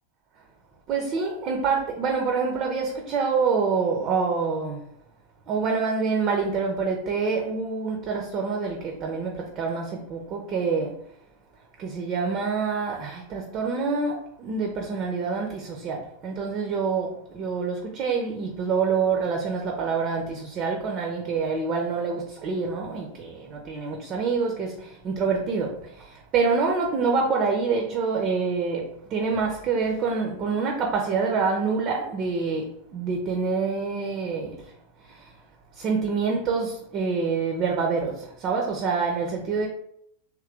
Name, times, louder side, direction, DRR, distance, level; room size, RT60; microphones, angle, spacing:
voice 1, 0.9-4.8 5.5-10.9 11.8-25.8 26.1-34.5 35.8-39.7, right 5 dB, 35° right, 1 dB, 0.7 m, -26 dB
3.7 x 3.0 x 3.3 m, 0.71 s
figure-of-eight pair, 90°, 0 cm